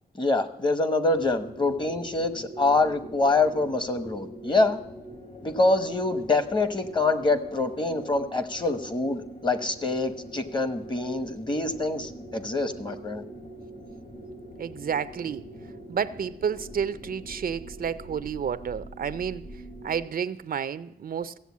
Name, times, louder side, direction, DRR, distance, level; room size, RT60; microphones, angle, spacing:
voice 1, 0.2-4.8 5.4-13.2, left 2 dB, 30° left, 1.0 m, -25 dB
sound 1, 1.1-20.0, right 1 dB, 60° left, 3.5 m, -44 dB
voice 2, 14.6-15.5 15.9-21.4, right 7 dB, 65° right, 0.5 m, -31 dB
15.0 x 8.0 x 8.3 m
wide cardioid pair, 155°, 16 cm